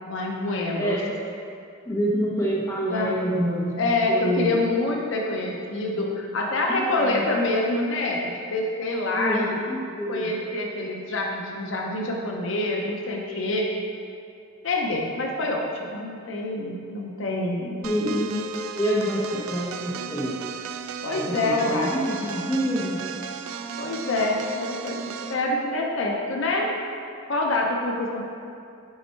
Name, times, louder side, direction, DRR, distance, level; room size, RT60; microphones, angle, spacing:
voice 1, 0.1-1.0 2.9-3.1 3.8-9.6 10.1-13.7 14.6-17.9 21.0-22.0 23.8-26.7 27.3-28.3, left 2 dB, 60° left, 0 dB, 0.6 m, -26 dB
voice 2, 0.7-1.2 1.8-4.6 6.8-7.2 9.1-10.3 17.8-18.4 18.8-20.4 21.1-23.0, equal, 15° left, -5 dB, 0.8 m, -27 dB
sound 1, 17.8-25.4, right 6 dB, 80° right, 0.3 m, -35 dB
5.4 x 4.5 x 4.4 m, 2.5 s
head